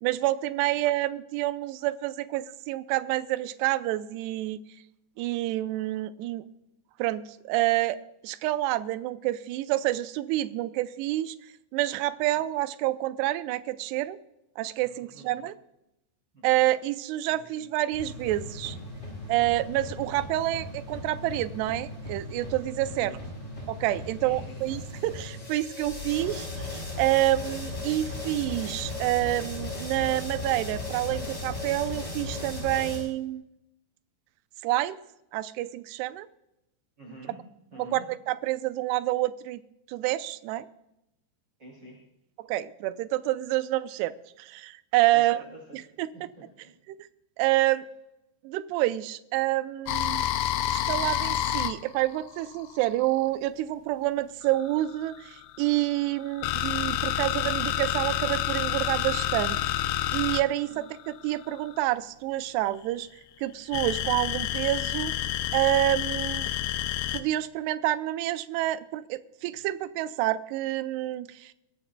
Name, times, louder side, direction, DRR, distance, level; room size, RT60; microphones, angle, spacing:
voice 1, 0.0-4.6 5.2-6.5 7.0-8.0 8.2-11.4 11.7-14.2 14.6-15.5 16.4-18.8 19.3-23.2 23.7-33.4 34.6-35.0 35.3-36.3 37.8-39.6 39.9-40.7 42.5-45.4 46.0-46.3 47.4-47.8 48.4-50.3 50.7-63.1 63.4-65.1 65.5-66.5 67.1-71.5, right 15 dB, 80° right, 13 dB, 2.5 m, -28 dB
voice 2, 14.8-15.5 16.3-16.7 17.2-17.6 22.9-23.2 24.2-24.7 37.0-37.4 37.7-38.0 41.6-42.0 45.0-45.8 46.1-46.7 60.6-60.9 69.4-69.6, right 1 dB, 30° right, -2 dB, 2.9 m, -48 dB
sound 1, 17.9-33.0, left 2 dB, 10° left, 6.2 m, -37 dB
sound 2, 49.9-53.3 54.4-61.8 63.7-67.2, left 12 dB, 80° left, 2.2 m, -29 dB
22.5 x 14.5 x 2.3 m, 0.87 s
omnidirectional pair, 5.0 m